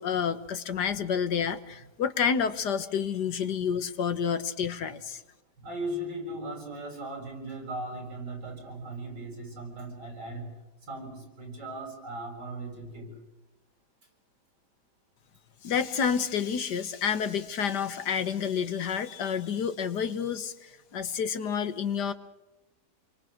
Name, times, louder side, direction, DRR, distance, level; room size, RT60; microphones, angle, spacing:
voice 1, 0.0-5.2 15.6-22.1, left 7 dB, 75° left, 11 dB, 1.9 m, -29 dB
voice 2, 5.6-10.5 10.8-13.1, right 1 dB, 80° right, 2 dB, 7.6 m, -38 dB
28.5 x 23.5 x 6.5 m, 1.0 s
omnidirectional pair, 1.8 m